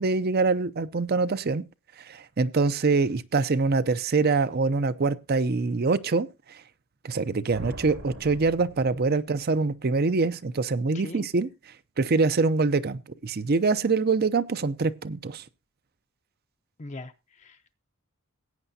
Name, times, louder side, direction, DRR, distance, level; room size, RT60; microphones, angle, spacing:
voice 1, 0.0-1.6 2.0-6.6 7.0-11.5 12.0-15.4, right 4 dB, 45° right, 0.6 m, -24 dB
sound 1, 7.5-9.8, right 1 dB, 85° right, 4.1 m, -43 dB
voice 2, 10.9-11.3 16.8-17.7, left 2 dB, 35° left, 0.6 m, -41 dB
17.0 x 9.0 x 2.7 m
head